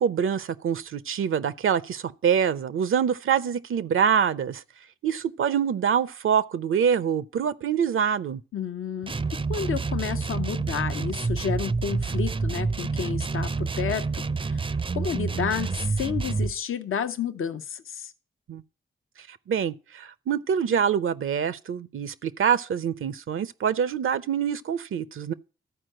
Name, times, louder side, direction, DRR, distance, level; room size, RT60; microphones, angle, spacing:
voice 1, 0.0-4.6 5.0-8.4 18.5-18.6 19.5-25.3, right 7 dB, 80° right, 0.7 m, -25 dB
voice 2, 8.5-9.2 9.5-14.7 14.9-18.1, left 7 dB, 80° left, 0.8 m, -31 dB
sound 1, 9.0-16.6, right 4 dB, 25° right, 0.4 m, -28 dB
13.0 x 4.7 x 7.7 m
cardioid pair, 50°, 21 cm